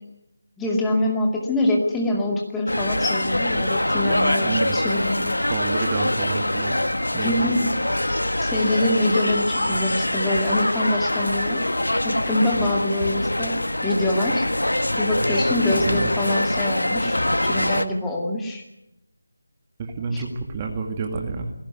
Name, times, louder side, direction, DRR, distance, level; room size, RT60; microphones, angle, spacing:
voice 1, 0.6-5.4 7.2-7.7 8.4-11.7 12.0-13.6 13.8-14.5 15.0-18.6 20.1-20.2, left 1 dB, 5° left, -1 dB, 2.2 m, -24 dB
sound 1, 2.7-17.9, left 1 dB, 75° left, 1.6 m, -24 dB
voice 2, 4.4-4.8 5.5-6.8 7.1-7.4 15.8-16.3 19.8-21.5, right 4 dB, 20° right, 3 dB, 2.1 m, -29 dB
20.5 x 17.0 x 9.4 m, 0.87 s
figure-of-eight pair, 160°, 0 cm